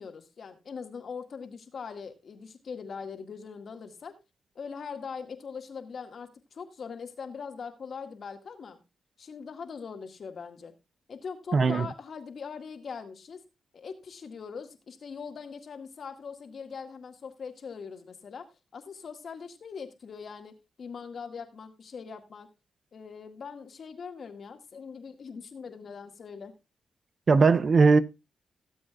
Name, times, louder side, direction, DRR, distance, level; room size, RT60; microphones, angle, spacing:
voice 1, 0.0-4.1 4.6-8.8 9.2-10.7 11.1-13.4 13.7-22.5 22.9-26.5, left 6 dB, 60° left, 1.8 m, -41 dB
voice 2, 11.5-11.9 27.3-28.0, right 4 dB, 45° right, 0.7 m, -19 dB
16.5 x 7.8 x 2.4 m
cardioid pair, 85°, 0 cm